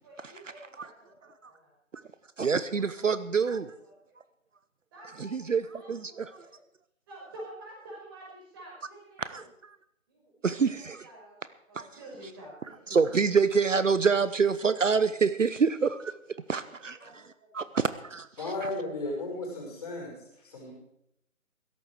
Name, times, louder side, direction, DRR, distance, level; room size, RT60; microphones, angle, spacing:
voice 1, 0.0-1.7 2.7-3.1 3.4-4.2 4.9-6.6 7.1-9.4 10.1-11.4 11.7-12.9 16.6-17.9, right 1 dB, 15° right, -3 dB, 5.6 m, -50 dB
voice 2, 2.4-3.7 5.2-6.5 9.2-9.4 10.4-11.1 11.7-11.9 12.9-16.1 16.5-17.2 17.5-18.3, right 5 dB, 65° right, 14 dB, 1.0 m, -26 dB
voice 3, 18.4-20.7, left 2 dB, 30° left, 0 dB, 5.6 m, -35 dB
16.5 x 14.0 x 4.7 m, 0.76 s
figure-of-eight pair, 165°, 41 cm